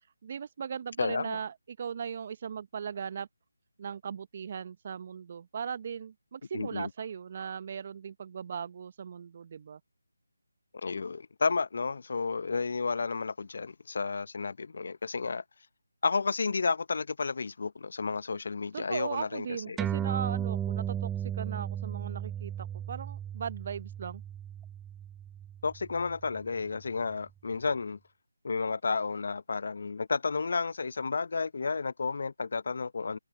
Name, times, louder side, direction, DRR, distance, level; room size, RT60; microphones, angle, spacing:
voice 1, 0.2-3.3 3.8-9.8 18.7-24.2, right 7 dB, 35° right, 1.1 m, -38 dB
voice 2, 1.0-1.4 6.5-6.9 10.8-15.4 16.0-19.8 25.6-28.0 28.4-33.2, left 4 dB, 50° left, 1.0 m, -32 dB
sound 1, 19.8-26.6, right 10 dB, 5° right, 0.4 m, -35 dB
figure-of-eight pair, 155°, 0 cm